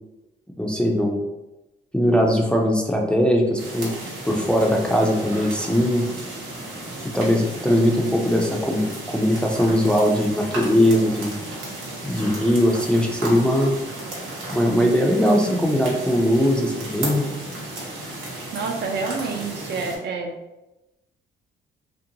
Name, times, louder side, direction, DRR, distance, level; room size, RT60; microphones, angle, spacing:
voice 1, 0.6-1.2 1.9-3.9 4.3-6.1 7.0-8.8 9.1-11.4 12.0-13.7 14.5-17.3, equal, 5° left, 0 dB, 0.4 m, -20 dB
sound 1, 3.6-20.0, right 2 dB, 90° right, 0.9 m, -34 dB
voice 2, 18.5-20.3, right 4 dB, 60° right, 3 dB, 0.5 m, -28 dB
2.5 x 2.1 x 2.7 m, 0.98 s
cardioid pair, 90°, 20 cm